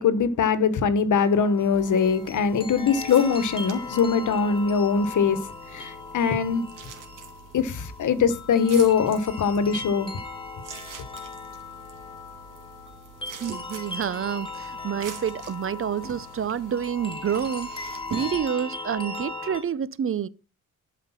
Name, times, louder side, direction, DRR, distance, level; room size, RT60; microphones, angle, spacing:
voice 1, 0.0-6.6 7.5-10.1, left 6 dB, 75° left, 1.2 m, -22 dB
sound 1, 1.1-19.6, left 3 dB, 15° left, 2.4 m, -38 dB
sound 2, 1.7-18.4, right 5 dB, 85° right, 2.1 m, -45 dB
voice 2, 13.4-17.7 18.1-20.3, right 8 dB, 45° right, 0.6 m, -28 dB
12.0 x 5.1 x 5.7 m
wide cardioid pair, 115°, 31 cm